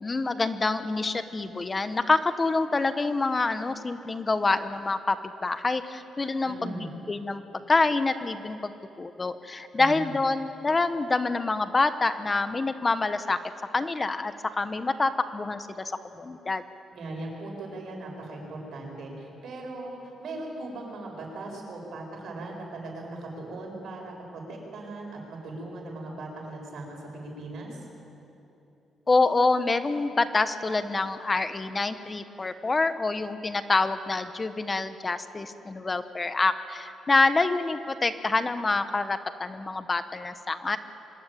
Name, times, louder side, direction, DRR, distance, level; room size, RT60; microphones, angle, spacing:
voice 1, 0.0-8.7 9.0-13.4 13.7-16.6 29.1-40.8, left 3 dB, 25° left, 10 dB, 1.1 m, -26 dB
voice 2, 6.4-6.9 9.7-10.2 16.9-27.8, right 2 dB, 70° right, 1 dB, 7.5 m, -39 dB
25.0 x 21.5 x 9.2 m, 2.9 s
cardioid pair, 95°, 0 cm